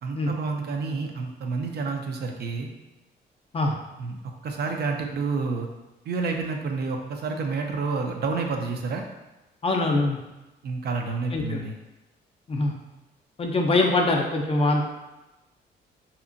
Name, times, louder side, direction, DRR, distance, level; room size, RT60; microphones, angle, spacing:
voice 1, 0.0-2.7 4.0-4.2 4.4-5.7 6.1-9.0 10.6-11.7, right 4 dB, 55° right, 3 dB, 0.4 m, -29 dB
voice 2, 9.6-10.2 11.3-11.6 12.5-12.7 13.4-14.8, left 2 dB, 30° left, 1 dB, 0.4 m, -23 dB
2.8 x 2.4 x 2.5 m, 1.0 s
cardioid pair, 90°, 20 cm